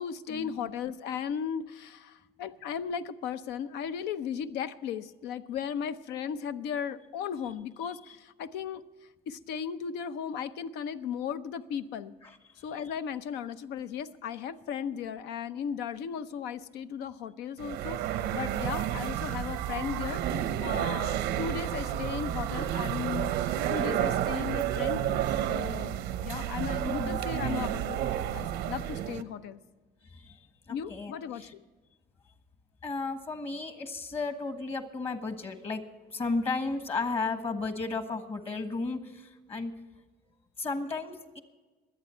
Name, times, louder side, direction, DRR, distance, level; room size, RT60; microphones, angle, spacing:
voice 1, 0.0-12.1 12.6-29.6 30.7-31.6, left 8 dB, 90° left, 11 dB, 0.7 m, -36 dB
sound 1, 17.6-29.2, right 11 dB, 90° right, 0.8 m, -31 dB
voice 2, 26.8-27.6 27.9-28.0 30.1-30.4 30.7-31.5 32.8-35.8 36.1-39.7 40.6-41.4, left 3 dB, 35° left, 8 dB, 1.3 m, -34 dB
23.0 x 8.4 x 4.4 m, 1.3 s
cardioid pair, 110°, 17 cm